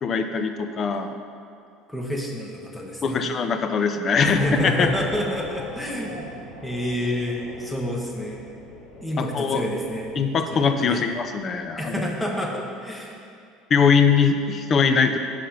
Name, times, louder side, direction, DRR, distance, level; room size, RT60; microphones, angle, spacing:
voice 1, 0.0-1.1 3.0-4.9 9.3-9.6 10.2-12.0 13.7-15.2, left 5 dB, 40° left, 7 dB, 0.5 m, -21 dB
voice 2, 1.9-3.2 4.2-6.3 6.6-8.4 9.0-10.1 10.5-11.0 11.8-13.2, left 1 dB, 5° left, -1 dB, 1.2 m, -28 dB
sound 1, 4.1-12.2, left 1 dB, 80° left, 1.2 m, -42 dB
5.5 x 4.9 x 5.6 m, 2.4 s
figure-of-eight pair, 65°, 0 cm